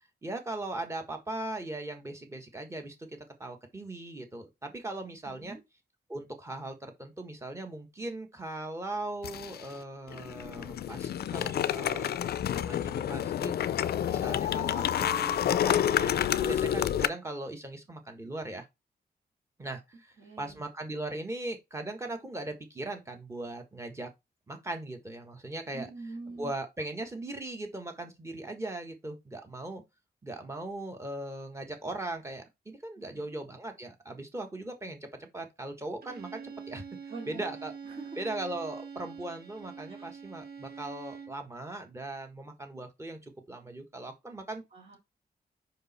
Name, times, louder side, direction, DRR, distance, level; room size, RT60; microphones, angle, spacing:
voice 1, 0.2-5.6 6.1-13.5 14.0-18.6 19.6-24.1 24.5-25.9 26.4-29.8 30.2-36.8 37.3-37.7 38.2-44.6, right 2 dB, 15° right, 1.5 m, -39 dB
voice 2, 5.2-5.6 20.2-20.6 25.7-26.5 33.0-33.2 37.1-37.5 37.8-38.2 39.9-40.0 44.7-45.0, right 3 dB, 45° right, 2.6 m, -44 dB
sound 1, 9.2-9.7 10.1-17.1, left 10 dB, 80° left, 0.4 m, -29 dB
Bowed string instrument, 36.0-41.5, right 6 dB, 80° right, 1.3 m, -45 dB
5.3 x 5.1 x 4.2 m
wide cardioid pair, 170°, 16 cm